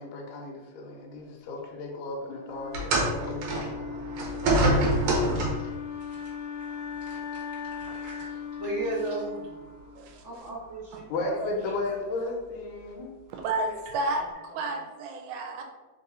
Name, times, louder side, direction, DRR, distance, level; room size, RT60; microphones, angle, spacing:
voice 1, 0.0-4.0 9.4-9.5 11.1-13.1, left 2 dB, 80° left, 0 dB, 2.1 m, -35 dB
Wind instrument woodwind instrument, 2.2-10.3, left 6 dB, 60° left, 1.5 m, -38 dB
sound 1, 2.7-5.8 6.8-7.0 7.8-7.9, right 1 dB, 65° right, 1.8 m, -26 dB
voice 2, 4.3-4.8 5.1-5.3 10.0-10.5 10.9-11.0 13.3-15.6, right 2 dB, 85° right, 3 dB, 2.0 m, -33 dB
voice 3, 7.1-7.4 7.8-9.4 10.2-11.0 11.4-11.5 11.8-11.9, right 2 dB, 45° right, -7 dB, 0.9 m, -35 dB
4.7 x 2.7 x 3.9 m, 1.2 s
omnidirectional pair, 3.3 m